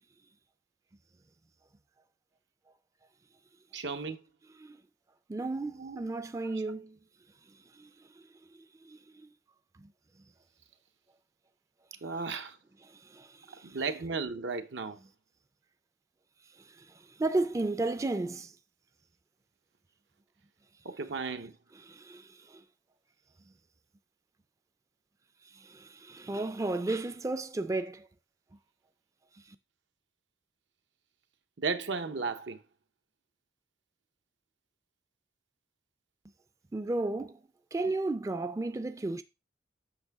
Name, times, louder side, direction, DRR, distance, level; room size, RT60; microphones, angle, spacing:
voice 1, 3.7-4.2 5.8-6.0 12.0-12.6 13.6-15.0 20.8-21.5 31.6-32.6, right 4 dB, 85° right, 0.8 m, -34 dB
voice 2, 5.3-7.0 7.7-8.2 8.8-9.3 9.8-9.9 12.8-13.8 16.6-18.5 21.7-22.6 25.4-28.1 29.5-29.6 36.7-37.4 37.7-39.2, right 2 dB, 15° right, 0.3 m, -34 dB
8.1 x 6.1 x 3.5 m
head